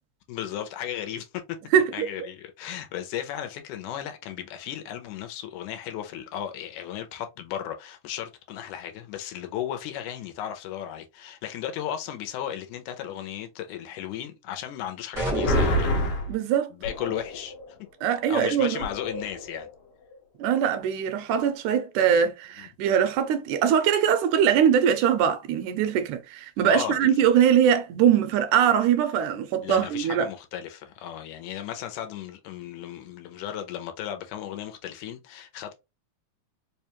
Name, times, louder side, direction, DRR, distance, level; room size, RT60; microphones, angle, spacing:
voice 1, 0.3-1.6 1.9-15.9 16.7-17.8 18.3-19.7 22.6-22.7 26.7-27.2 29.6-35.7, left 10 dB, 80° left, 2.0 m, -35 dB
voice 2, 1.7-2.1 16.3-16.7 18.0-18.8 20.4-30.3, right 8 dB, 80° right, 2.0 m, -22 dB
sound 1, 15.1-16.2, equal, 55° right, 0.4 m, -27 dB
sound 2, 15.4-16.3 16.8-17.7 18.1-18.2 18.8-19.7 20.1-20.2, left 1 dB, 65° left, 1.6 m, -28 dB
4.9 x 2.2 x 2.9 m
omnidirectional pair, 3.6 m